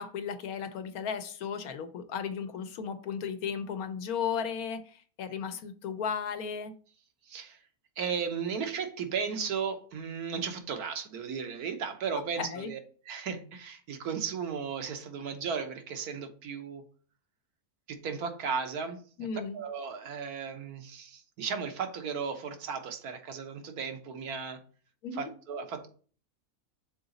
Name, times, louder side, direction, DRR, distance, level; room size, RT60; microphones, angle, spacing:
voice 1, 0.0-6.7 12.1-12.7 19.2-19.6 25.0-25.3, left 7 dB, 80° left, 1.2 m, -35 dB
voice 2, 7.2-7.6 8.0-12.8 13.1-16.8 17.9-19.3 19.5-24.6 25.1-25.9, right 6 dB, 90° right, 1.4 m, -35 dB
6.8 x 3.9 x 3.9 m
omnidirectional pair, 1.6 m